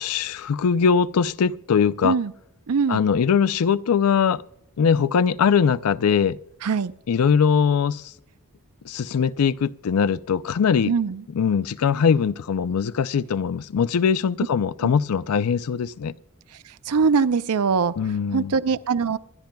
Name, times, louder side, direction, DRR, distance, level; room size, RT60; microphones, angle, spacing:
voice 1, 0.0-2.1 2.9-4.4 4.8-6.4 7.1-8.0 8.9-10.9 11.3-16.1 18.0-18.5, left 6 dB, 80° left, 0.4 m, -21 dB
voice 2, 2.7-3.0 6.6-6.9 10.9-11.2 14.8-14.9 16.7-17.9 18.3-19.2, right 5 dB, 85° right, 0.5 m, -22 dB
27.0 x 11.5 x 2.3 m
head